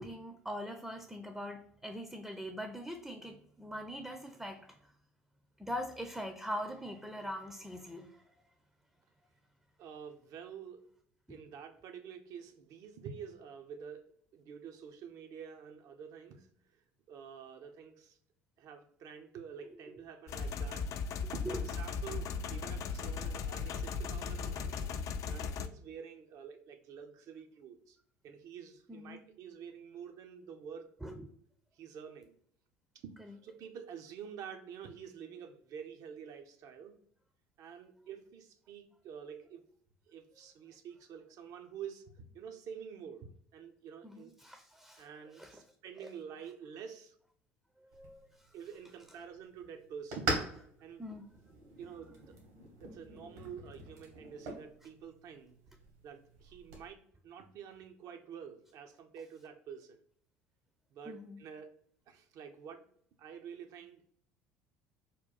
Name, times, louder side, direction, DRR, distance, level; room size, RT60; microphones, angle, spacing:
voice 1, 0.0-4.7 5.6-8.3 11.3-11.4 21.2-21.6 28.9-29.2 31.0-31.2 44.0-45.1 45.3-45.6 46.0-46.1 47.9-48.2 51.0-51.3 61.1-61.4, equal, 5° right, 0.5 m, -42 dB
voice 2, 9.8-10.8 11.3-14.1 14.3-18.2 18.6-20.9 21.3-24.9 25.3-28.0 28.2-30.9 31.7-32.3 32.9-37.0 37.6-39.6 40.1-44.3 45.0-47.2 48.5-50.4 50.8-51.0 51.8-52.4 52.8-55.6 56.0-60.0 60.9-61.7 62.1-62.9 63.2-64.0, right 7 dB, 55° right, 0.5 m, -48 dB
sound 1, 20.3-25.7, left 5 dB, 50° left, 0.4 m, -37 dB
sound 2, 47.9-56.9, right 2 dB, 75° right, 1.3 m, -43 dB
3.6 x 2.3 x 4.0 m
hypercardioid pair, 65°, 7 cm